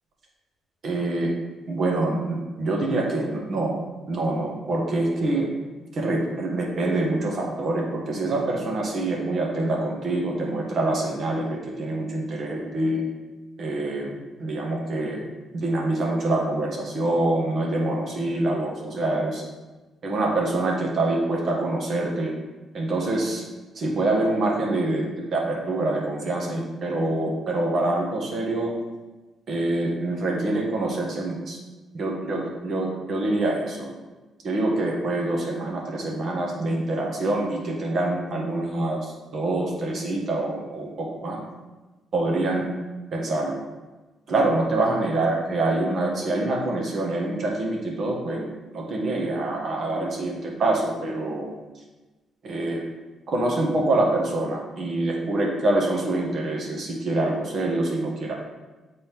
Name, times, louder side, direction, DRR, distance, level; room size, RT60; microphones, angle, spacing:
voice 1, 0.8-1.3 1.7-3.8 4.1-5.5 5.9-13.0 13.6-15.2 15.5-19.4 20.0-22.3 22.7-23.4 23.7-28.7 29.5-31.6 31.9-33.9 34.4-41.4 42.1-42.7 43.1-43.6 44.3-51.5 52.4-52.8 53.3-58.3, right 2 dB, 55° right, -1 dB, 1.5 m, -25 dB
7.4 x 3.9 x 3.6 m, 1.2 s
cardioid pair, 90°, 0 cm